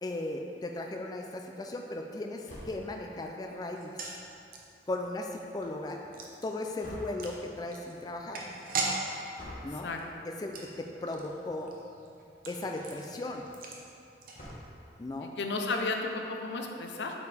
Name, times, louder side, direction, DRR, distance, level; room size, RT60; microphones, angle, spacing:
voice 1, 0.0-4.0 4.9-6.0 6.4-8.4 9.6-9.9 10.2-11.7 12.5-13.4 15.0-15.3, left 2 dB, 25° left, 2 dB, 0.3 m, -37 dB
sound 1, 2.5-3.0 6.8-7.4 9.3-9.8 11.0-11.3 11.7-11.8 12.0-12.1 14.3-14.9, equal, 45° left, 1.3 m, -46 dB
sound 2, 3.7-14.9 15.2-15.3 15.6-15.8, right 3 dB, 55° right, 0.8 m, -41 dB
voice 2, 15.2-17.2, left 3 dB, 85° left, 3 dB, 0.7 m, -33 dB
8.1 x 5.0 x 3.3 m, 2.6 s
head